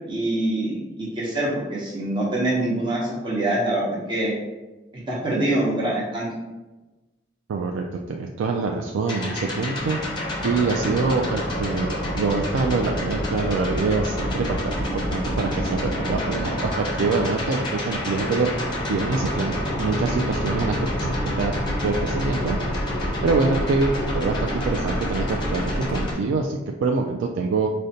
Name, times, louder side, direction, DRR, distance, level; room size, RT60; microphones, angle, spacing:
voice 1, 0.1-4.3 5.1-6.3, right 1 dB, 25° right, -5 dB, 0.7 m, -25 dB
voice 2, 7.5-18.5 18.9-22.6 23.2-27.7, right 4 dB, 85° right, 2 dB, 0.3 m, -25 dB
sound 1, 9.1-26.1, equal, 25° left, 0.7 m, -27 dB
4.9 x 2.1 x 2.7 m, 1.1 s
head